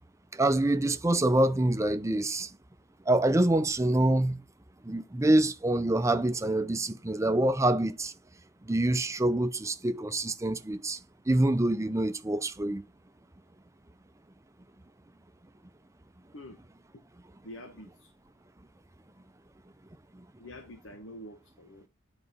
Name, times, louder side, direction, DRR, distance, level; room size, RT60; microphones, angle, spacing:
voice 1, 0.3-2.5 3.1-4.4 4.8-8.1 8.7-11.0 11.3-12.8 20.1-20.2, right 1 dB, 15° right, 0.6 m, -26 dB
voice 2, 17.4-18.1 20.4-21.9, left 1 dB, 75° left, 1.3 m, -46 dB
10.0 x 4.0 x 5.4 m
head